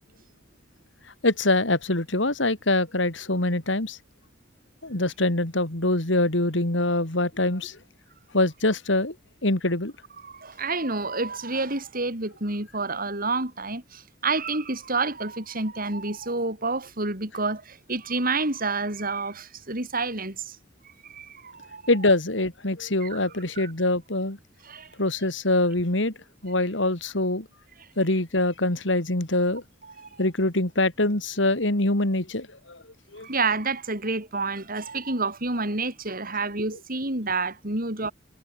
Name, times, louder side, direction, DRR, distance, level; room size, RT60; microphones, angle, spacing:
voice 1, 1.2-4.0 4.8-7.8 8.3-9.1 9.4-9.9 21.9-24.4 25.0-26.1 26.4-27.4 28.0-29.6 30.2-32.8 33.1-33.3, left 2 dB, 70° left, 3.1 m, -24 dB
voice 2, 10.2-20.6 21.1-21.8 23.0-23.2 23.6-23.7 24.6-24.9 30.0-30.1 33.2-38.1, right 3 dB, 50° right, 6.8 m, -29 dB
head